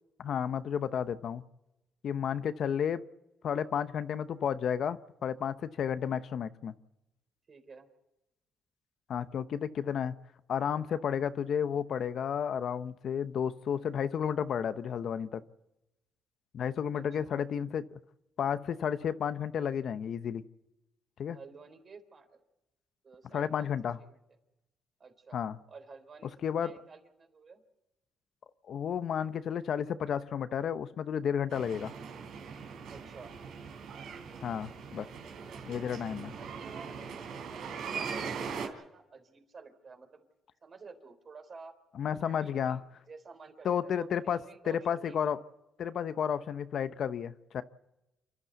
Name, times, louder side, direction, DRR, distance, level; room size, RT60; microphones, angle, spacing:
voice 1, 0.2-1.4 2.0-3.0 3.4-6.7 9.1-10.1 10.5-15.4 16.5-18.0 18.4-20.4 21.2-21.4 23.3-24.0 25.3-25.6 26.4-26.7 28.7-31.9 34.4-35.1 35.7-36.3 42.0-42.8 43.6-44.4 44.7-45.4 45.8-47.6, left 8 dB, 65° left, 12 dB, 0.8 m, -32 dB
voice 2, 7.5-7.9 16.9-17.3 21.3-22.4 23.0-23.7 24.0-24.2 25.0-25.4 25.7-27.6 32.9-33.4 35.1-35.2 35.5-35.8 36.1-40.3 40.6-41.7 42.2-45.4, right 4 dB, 45° right, 6 dB, 3.7 m, -52 dB
sound 1, 31.5-38.7, right 6 dB, 85° right, 3.3 m, -41 dB
28.0 x 12.0 x 8.2 m, 0.96 s
cardioid pair, 90°, 0 cm